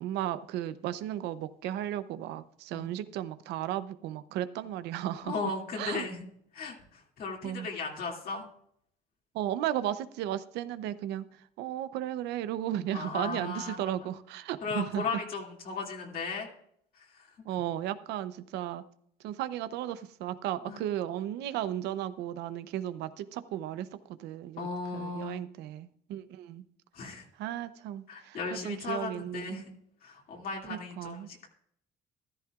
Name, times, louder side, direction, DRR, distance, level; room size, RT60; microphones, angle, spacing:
voice 1, 0.0-5.3 5.8-6.1 7.4-7.7 9.3-11.2 11.6-15.0 17.4-18.8 19.2-24.7 24.9-26.6 27.4-28.4 28.6-29.6 30.7-31.3, right 12 dB, 85° right, 14 dB, 0.7 m, -35 dB
voice 2, 5.2-6.2 6.5-8.4 12.9-14.1 14.6-16.5 17.0-17.3 20.6-20.8 24.6-25.4 26.9-27.2 28.1-29.7 30.0-31.5, left 4 dB, 60° left, -1 dB, 2.5 m, -36 dB
14.0 x 12.5 x 2.4 m, 0.69 s
cardioid pair, 110°, 17 cm